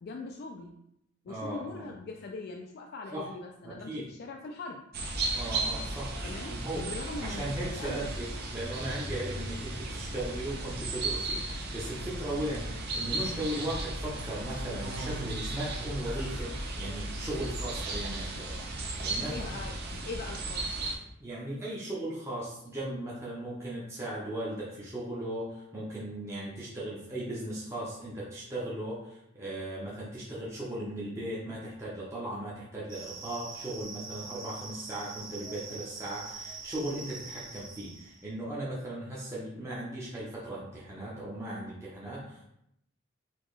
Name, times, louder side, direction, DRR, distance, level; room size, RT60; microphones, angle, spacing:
voice 1, 0.0-0.8 1.2-4.8 6.2-8.1 19.3-20.7, left 3 dB, 50° left, 1 dB, 0.3 m, -41 dB
voice 2, 1.3-1.9 3.1-3.3 3.6-4.1 5.3-6.1 6.5-6.9 7.2-18.6 19.0-19.5 21.2-42.4, right 1 dB, 15° right, -7 dB, 0.7 m, -37 dB
sound 1, 4.9-21.0, right 2 dB, 50° right, 0.6 m, -35 dB
sound 2, 32.9-38.2, right 4 dB, 70° right, 1.1 m, -44 dB
4.3 x 2.9 x 3.1 m, 0.78 s
head